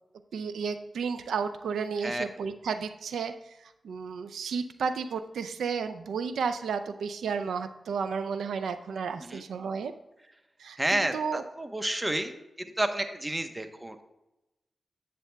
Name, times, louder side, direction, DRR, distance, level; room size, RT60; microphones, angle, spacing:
voice 1, 0.3-3.4 3.8-9.9 10.6-11.4, right 6 dB, 90° right, 11 dB, 0.4 m, -32 dB
voice 2, 10.8-12.3 12.6-14.0, right 1 dB, 20° right, 7 dB, 0.9 m, -30 dB
10.0 x 7.6 x 2.3 m, 0.95 s
cardioid pair, 50°, 0 cm